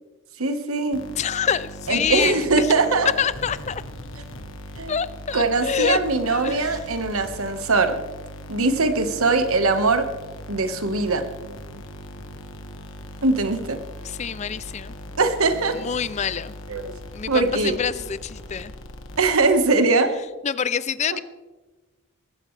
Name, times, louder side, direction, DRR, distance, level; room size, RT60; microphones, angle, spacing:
voice 1, 0.4-1.0 1.9-3.1 4.8-5.0 5.3-8.0 8.5-10.1 10.5-11.2 13.2-13.8 15.2-15.8 16.7-16.9 17.3-17.8 19.2-20.1 21.1-21.2, right 3 dB, 80° right, 8 dB, 1.4 m, -21 dB
sound 1, 0.9-19.7, equal, 65° left, 1.6 m, -39 dB
voice 2, 1.2-2.7 3.2-3.8 4.9-6.0 6.3-6.8 14.0-14.9 15.7-16.5 17.1-18.7 20.4-21.2, left 7 dB, 30° left, 17 dB, 0.4 m, -26 dB
19.5 x 16.0 x 3.3 m, 1.2 s
head